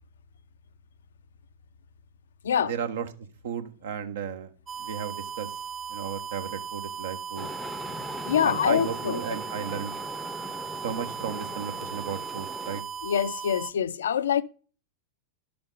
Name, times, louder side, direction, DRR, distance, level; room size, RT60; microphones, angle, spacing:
voice 1, 2.6-3.1 3.4-4.5 4.8-5.5 5.9-7.5 8.4-9.9 10.8-12.8, right 7 dB, 65° right, 1.2 m, -34 dB
sound 1, 4.7-13.7, right 7 dB, 20° right, 0.4 m, -37 dB
sound 2, 7.4-12.8, left 2 dB, 5° left, 0.7 m, -40 dB
voice 2, 8.3-9.3 13.0-14.4, left 8 dB, 70° left, 0.6 m, -25 dB
11.5 x 6.8 x 3.9 m
figure-of-eight pair, 95°, 0 cm